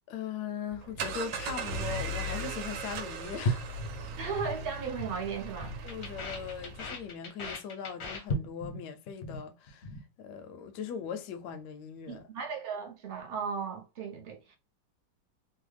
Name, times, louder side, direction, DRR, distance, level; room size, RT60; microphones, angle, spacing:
voice 1, 0.1-3.7 5.8-9.9 10.2-12.2, left 7 dB, 75° left, 1.1 m, -39 dB
sound 1, 0.7-7.1, right 2 dB, 90° right, 1.3 m, -38 dB
sound 2, 3.4-4.6 4.8-5.2 5.4-8.8 9.1-9.4 9.7-10.0, left 1 dB, 55° left, 0.8 m, -35 dB
voice 2, 4.2-5.7 12.1-14.6, right 6 dB, 60° right, 0.6 m, -36 dB
3.1 x 2.2 x 3.2 m
omnidirectional pair, 2.0 m